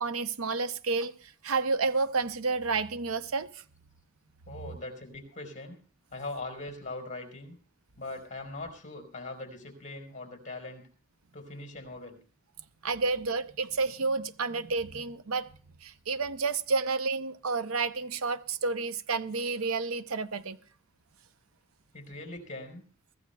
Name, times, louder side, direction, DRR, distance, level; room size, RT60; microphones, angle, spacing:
voice 1, 0.0-3.6 12.8-15.5 15.8-20.6, right 4 dB, 90° right, 0.7 m, -30 dB
voice 2, 4.5-5.8 6.1-7.6 8.0-10.8 11.3-12.2 21.9-22.8, left 2 dB, 35° left, 4.4 m, -41 dB
23.0 x 14.5 x 2.3 m
head